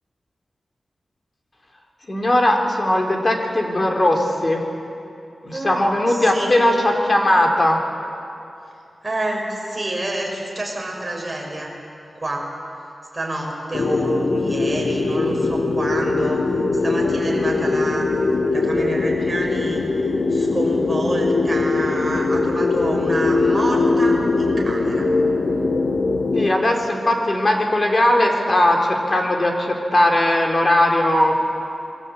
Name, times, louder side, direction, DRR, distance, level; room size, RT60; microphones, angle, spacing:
voice 1, 2.1-4.6 5.4-7.8 26.3-31.4, left 1 dB, 35° left, 1 dB, 3.8 m, -18 dB
voice 2, 5.5-6.6 9.0-11.7 12.1-12.5 13.1-18.1 18.5-19.9 20.3-25.1 26.4-26.5, right 1 dB, 20° right, -2 dB, 6.5 m, -28 dB
sound 1, 13.7-26.5, left 3 dB, 75° left, 1.8 m, -21 dB
27.5 x 22.5 x 8.4 m, 2.7 s
wide cardioid pair, 115°, 0 cm